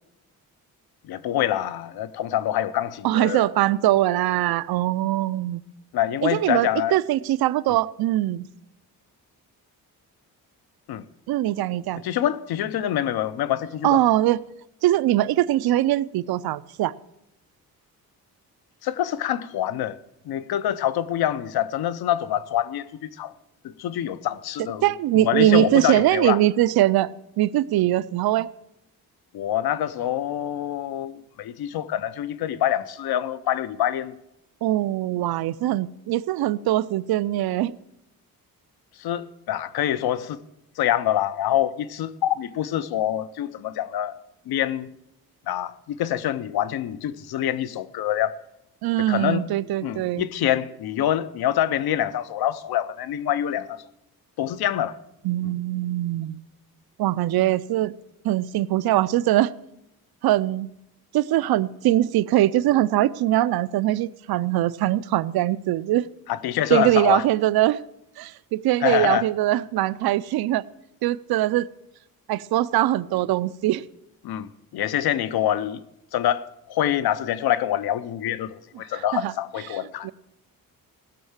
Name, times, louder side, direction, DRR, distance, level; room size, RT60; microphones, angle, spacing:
voice 1, 1.0-3.4 5.9-7.0 10.9-11.0 12.0-14.0 18.8-20.0 20.3-23.3 23.6-26.4 29.3-34.1 39.0-40.4 40.8-44.2 44.5-44.9 45.5-48.3 49.0-49.5 49.8-53.8 54.4-55.0 55.4-55.5 66.3-67.2 68.8-69.3 74.2-75.8 76.1-80.1, left 11 dB, 90° left, 0.7 m, -26 dB
voice 2, 3.0-5.6 6.2-8.5 11.3-12.0 13.8-14.4 14.8-16.9 24.8-28.5 34.6-37.8 48.8-50.2 55.2-56.4 57.0-57.9 58.2-59.5 60.2-60.7 61.1-66.1 66.7-67.8 68.2-70.6 71.0-71.7 72.3-73.8 78.9-79.3 79.7-79.8 80.0-80.1, right 14 dB, 80° right, 0.5 m, -22 dB
16.0 x 6.5 x 7.3 m
cardioid pair, 130°, 36 cm